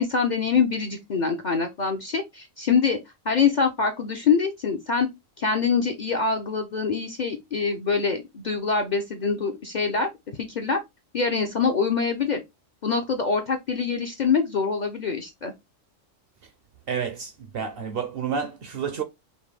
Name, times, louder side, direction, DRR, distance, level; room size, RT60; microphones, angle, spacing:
voice 1, 0.0-3.0 3.2-5.1 5.4-10.1 10.4-10.8 11.1-12.4 12.8-15.5, left 5 dB, 50° left, 0.5 m, -24 dB
voice 2, 16.9-19.0, right 6 dB, 60° right, 0.6 m, -30 dB
5.2 x 2.2 x 3.2 m
omnidirectional pair, 1.3 m